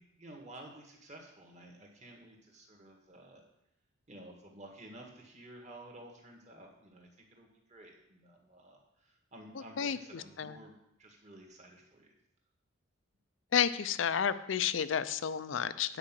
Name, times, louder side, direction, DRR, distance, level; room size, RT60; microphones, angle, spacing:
voice 1, 0.0-3.4 4.1-12.1, right 1 dB, 35° right, 1 dB, 1.7 m, -53 dB
voice 2, 9.8-10.5 13.5-16.0, left 8 dB, 65° left, 14 dB, 0.5 m, -31 dB
9.1 x 4.9 x 7.5 m, 0.80 s
head